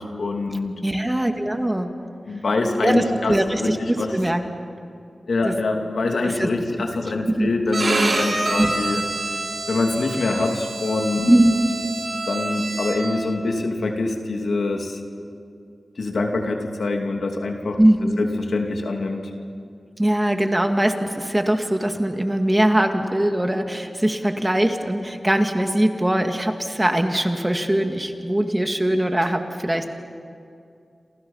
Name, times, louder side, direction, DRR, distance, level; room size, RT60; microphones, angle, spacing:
voice 1, 0.0-0.7 2.3-4.1 5.3-9.1 9.7-11.3 12.3-15.0 16.0-17.8 18.2-19.3, left 3 dB, 80° left, 3 dB, 2.7 m, -24 dB
voice 2, 0.8-1.9 2.8-4.5 5.4-5.6 6.2-6.5 7.3-7.5 8.6-8.7 11.3-11.7 17.8-18.2 20.0-29.9, right 1 dB, 15° right, 5 dB, 2.2 m, -21 dB
Bowed string instrument, 7.7-13.3, right 2 dB, 60° right, 4.5 m, -27 dB
28.5 x 27.5 x 5.7 m, 2.4 s
wide cardioid pair, 60°, 0 cm